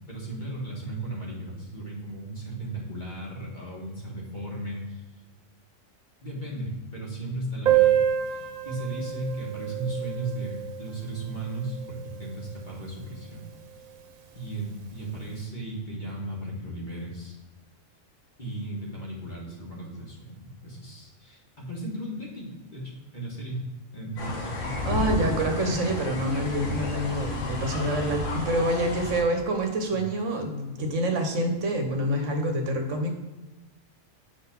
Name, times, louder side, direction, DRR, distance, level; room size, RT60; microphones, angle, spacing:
voice 1, 0.1-5.0 6.2-13.4 14.3-17.4 18.4-23.7 23.9-24.8 29.9-30.0, right 1 dB, 35° left, -4 dB, 1.7 m, -36 dB
Piano, 7.7-13.0 13.3-13.4 13.6-13.7 14.1-14.2 14.9-15.1, right 11 dB, 90° right, 1.2 m, -28 dB
sound 1, 24.2-29.2, left 2 dB, 70° left, 1.4 m, -32 dB
voice 2, 24.8-33.1, right 1 dB, 65° right, 4 dB, 1.2 m, -27 dB
7.0 x 3.8 x 5.7 m, 1.1 s
omnidirectional pair, 1.4 m